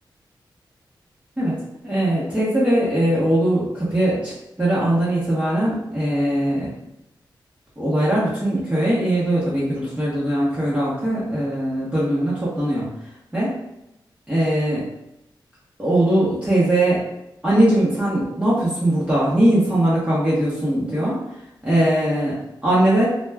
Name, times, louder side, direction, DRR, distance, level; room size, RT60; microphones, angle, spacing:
voice 1, 1.4-6.7 7.8-12.9 13.3-13.6 14.3-14.9 15.8-17.0 17.4-21.2 21.6-23.1, right 1 dB, 15° right, -8 dB, 0.8 m, -20 dB
2.3 x 2.1 x 3.3 m, 0.86 s
wide cardioid pair, 90°, 8 cm